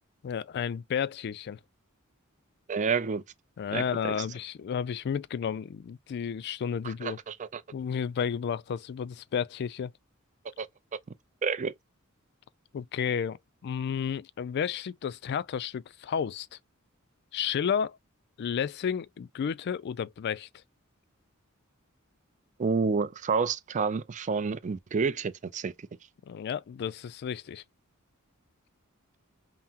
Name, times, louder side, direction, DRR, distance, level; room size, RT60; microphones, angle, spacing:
voice 1, 0.2-1.6 3.6-7.2 7.7-9.9 12.7-16.6 17.3-18.0 18.4-20.5 26.3-27.6, left 7 dB, 50° left, 0.3 m, -32 dB
voice 2, 2.7-3.2 3.7-4.1 6.8-7.6 10.6-10.7 11.4-11.7 22.6-25.7, right 5 dB, 35° right, 0.4 m, -29 dB
5.6 x 2.0 x 2.8 m
head